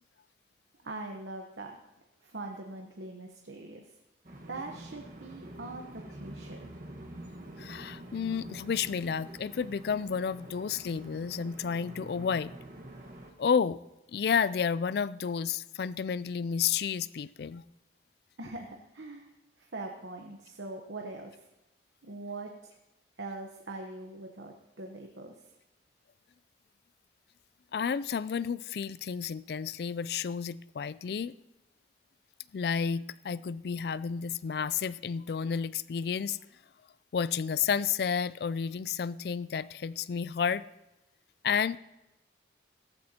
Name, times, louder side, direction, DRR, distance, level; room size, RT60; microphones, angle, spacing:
voice 1, 0.8-1.8 2.2-3.9 4.5-6.7 18.4-19.3 19.6-21.5 22.0-22.8 23.2-25.4, right 2 dB, 80° right, 2 dB, 1.0 m, -42 dB
sound 1, 4.2-13.3, right 1 dB, 45° right, 1.4 m, -46 dB
voice 2, 7.6-12.5 13.4-13.8 14.1-17.6 27.7-31.3 32.5-36.4 37.1-40.6 41.4-41.8, left 6 dB, 60° left, 18 dB, 0.3 m, -31 dB
16.5 x 14.0 x 2.9 m, 0.96 s
head